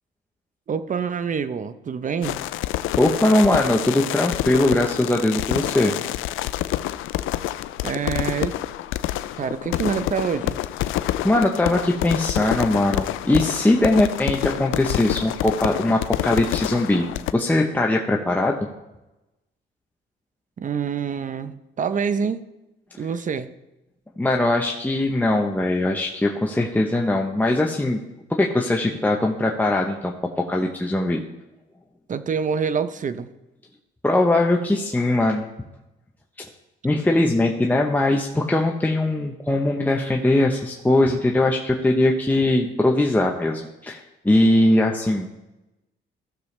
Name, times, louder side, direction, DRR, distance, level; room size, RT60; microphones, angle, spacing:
voice 1, 0.7-2.4 7.8-8.6 9.3-10.6 20.6-22.4 23.0-23.5 32.1-33.3 36.9-37.0, right 6 dB, 40° right, 13 dB, 0.7 m, -26 dB
sound 1, 2.2-17.3, left 14 dB, 85° left, 0.4 m, -27 dB
voice 2, 3.0-5.9 10.9-17.1 17.3-18.6 24.2-28.0 28.4-31.2 34.0-35.4 36.8-45.4, left 1 dB, 10° left, 1 dB, 0.9 m, -21 dB
15.0 x 6.8 x 3.3 m, 0.97 s
cardioid pair, 90°, 20 cm